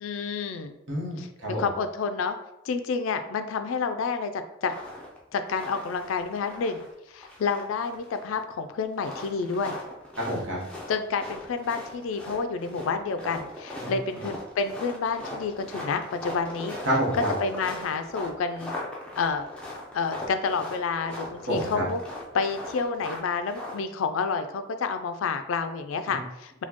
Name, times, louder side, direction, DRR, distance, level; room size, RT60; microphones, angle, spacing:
voice 1, 0.0-0.7 1.2-1.3 1.6-2.4 2.6-4.7 5.3-9.8 10.9-16.8 17.4-18.7 19.2-19.4 19.9-22.0 22.3-26.6, left 5 dB, 75° left, 8 dB, 0.3 m, -29 dB
voice 2, 0.9-1.6 10.2-10.6 13.8-13.9 16.8-17.3 21.5-21.8, equal, 60° right, -4 dB, 1.1 m, -28 dB
sound 1, 4.7-5.2 5.5-6.9 7.2-8.4 8.9-23.8, left 1 dB, 5° left, 0.5 m, -39 dB
4.1 x 2.2 x 2.9 m, 0.87 s
head